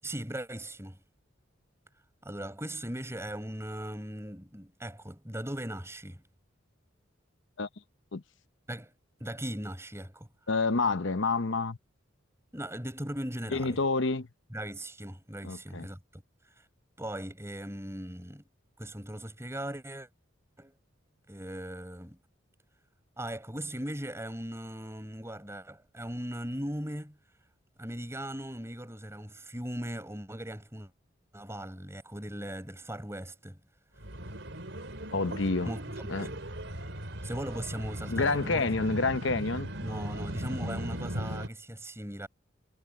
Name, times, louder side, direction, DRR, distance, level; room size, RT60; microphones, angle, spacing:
voice 1, 0.0-1.0 2.2-6.2 8.7-8.9 9.2-10.3 12.5-13.8 14.5-16.2 17.0-18.4 18.8-20.1 20.6-20.7 21.3-22.2 23.2-27.2 27.8-30.9 31.3-33.6 35.7-36.4 37.2-38.7 39.0-39.2 39.8-42.3, right 1 dB, 15° right, 5.4 m, -39 dB
voice 2, 10.5-11.8 13.5-14.3 15.4-15.9 35.1-35.7 36.1-36.3 38.1-39.7, left 3 dB, 65° left, 0.9 m, -28 dB
sound 1, 34.0-41.5, right 1 dB, 65° right, 5.1 m, -38 dB
head